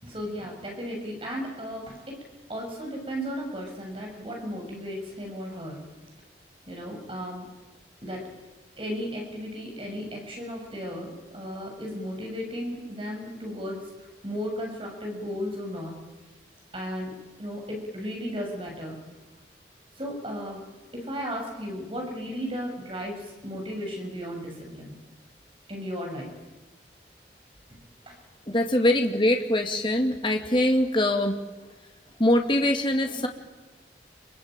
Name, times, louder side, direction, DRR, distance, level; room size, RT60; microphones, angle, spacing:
voice 1, 0.0-2.2 2.5-5.9 6.7-7.5 8.0-8.3 8.8-16.0 16.7-19.0 20.0-20.6 20.9-25.0 25.7-26.3 27.7-27.8 28.1-28.2 33.1-33.2, equal, 30° right, 1 dB, 6.9 m, -35 dB
voice 2, 28.5-31.4 32.2-33.3, left 1 dB, 25° left, 3 dB, 2.4 m, -23 dB
27.5 x 24.0 x 9.1 m, 1.2 s
head